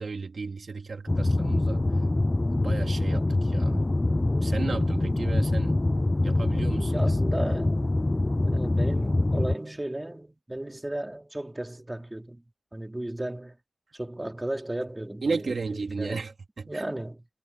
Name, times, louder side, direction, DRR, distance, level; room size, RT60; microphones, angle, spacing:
voice 1, 0.0-1.9 2.5-3.9 4.4-5.8 6.2-7.0 15.2-16.9, right 4 dB, 75° right, 3.6 m, -34 dB
sound 1, 1.1-9.6, left 2 dB, 30° left, 0.4 m, -25 dB
voice 2, 6.8-7.9 8.4-12.4 12.7-13.6 13.9-16.3 16.7-17.2, right 1 dB, 20° right, 3.4 m, -35 dB
wide cardioid pair, 80°, 0 cm